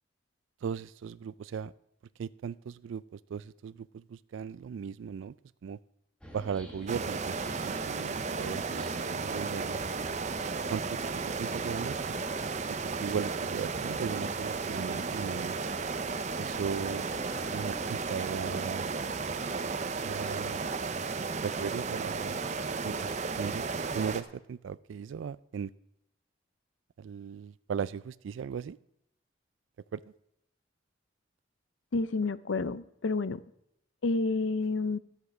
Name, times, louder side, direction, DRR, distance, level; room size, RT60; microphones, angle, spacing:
voice 1, 0.6-1.7 2.2-5.3 5.6-5.8 6.3-7.4 7.6-9.8 10.7-12.2 12.7-15.5 16.4-17.1 17.5-18.9 20.0-20.6 21.4-22.4 22.8-23.1 23.4-23.6 23.9-25.7 27.0-28.8 29.9-30.0, right 6 dB, 85° right, 17 dB, 0.3 m, -37 dB
sound 1, 6.2-18.0, equal, 5° left, 1.8 m, -49 dB
sound 2, 6.9-24.2, right 4 dB, 35° right, 0.6 m, -34 dB
voice 2, 31.9-33.4 34.0-35.0, left 3 dB, 80° left, 16 dB, 0.5 m, -29 dB
12.5 x 8.1 x 6.0 m, 0.78 s
head